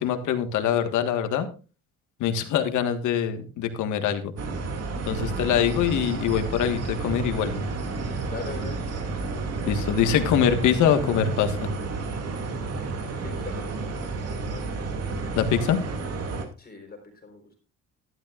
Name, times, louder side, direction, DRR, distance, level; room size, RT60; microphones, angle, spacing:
voice 1, 0.0-1.5 2.2-4.2 5.1-7.5 9.6-11.7 15.3-15.8, left 9 dB, 75° left, 7 dB, 1.6 m, -24 dB
sound 1, 4.4-16.5, right 3 dB, 55° right, 2.4 m, -31 dB
voice 2, 8.3-8.9 13.2-14.0 14.5-14.7 16.6-17.6, left 4 dB, 30° left, 3 dB, 4.2 m, -40 dB
13.0 x 12.0 x 2.5 m, 0.34 s
cardioid pair, 100°, 30 cm